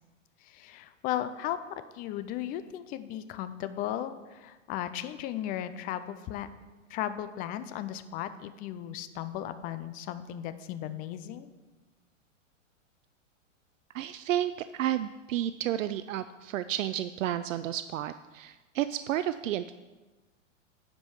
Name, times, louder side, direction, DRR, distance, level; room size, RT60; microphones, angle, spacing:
voice 1, 0.4-6.5 6.9-11.5, left 11 dB, 25° left, 12 dB, 0.4 m, -36 dB
voice 2, 13.9-19.7, right 12 dB, 75° right, 12 dB, 0.5 m, -31 dB
9.9 x 5.3 x 6.2 m, 1.2 s
hypercardioid pair, 120°, 39 cm